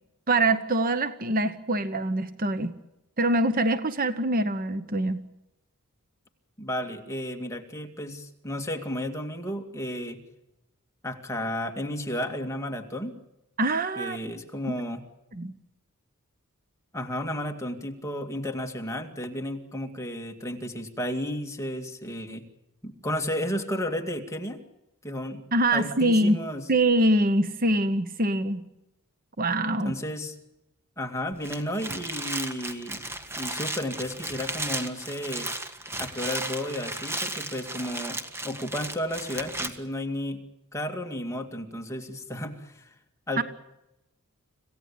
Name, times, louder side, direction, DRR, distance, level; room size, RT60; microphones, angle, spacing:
voice 1, 0.3-2.8 3.2-5.3 13.6-14.2 15.3-15.5 25.5-26.4 26.7-28.7 29.4-29.9 43.4-43.5, right 1 dB, 40° right, 12 dB, 1.0 m, -24 dB
voice 2, 6.6-10.2 11.0-13.1 14.0-15.0 16.9-22.4 22.8-24.6 25.0-25.4 25.7-26.6 29.8-30.3 31.0-33.0 33.4-35.5 36.0-38.2 38.4-40.4 40.7-42.9 43.3-43.4, left 1 dB, 15° left, 3 dB, 2.2 m, -33 dB
sound 1, 31.3-39.7, right 2 dB, 10° right, 1.6 m, -34 dB
26.5 x 16.5 x 8.7 m, 0.90 s
head